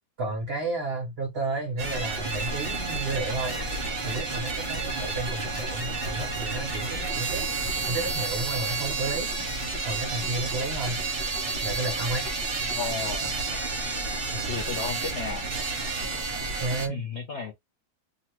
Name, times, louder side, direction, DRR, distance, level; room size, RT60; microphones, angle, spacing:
voice 1, 0.2-3.6 4.0-7.4 7.9-9.3 9.8-11.0 11.6-12.3 14.3-14.6 16.6-17.0, right 2 dB, 80° right, 0.5 m, -32 dB
sound 1, 1.8-16.9, right 3 dB, 45° right, 0.7 m, -30 dB
voice 2, 12.8-13.3 14.5-15.5 16.9-17.5, left 5 dB, 75° left, 0.6 m, -33 dB
3.0 x 2.4 x 2.9 m
omnidirectional pair, 2.0 m